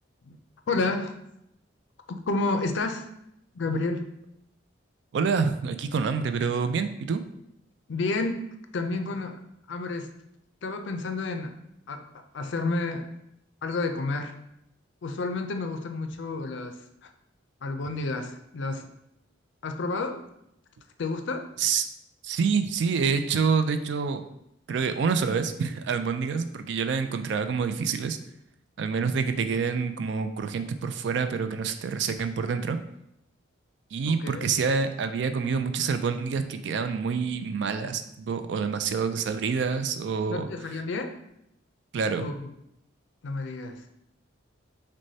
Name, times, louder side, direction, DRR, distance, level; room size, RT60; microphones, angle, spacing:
voice 1, 0.7-1.1 2.3-3.1 3.5-4.0 7.9-8.4 8.7-9.4 9.7-10.1 10.6-11.5 11.9-13.1 13.6-14.3 15.0-17.1 17.6-18.9 19.6-20.2 21.0-21.5 34.1-34.5 40.3-41.2 42.1-42.4 43.2-43.9, left 3 dB, 65° left, 6 dB, 0.4 m, -30 dB
voice 2, 5.1-7.2 21.6-21.9 22.2-24.2 24.7-28.2 28.8-32.8 33.9-40.5 41.9-42.3, right 5 dB, 60° right, 9 dB, 0.3 m, -27 dB
6.1 x 2.2 x 2.7 m, 0.79 s
head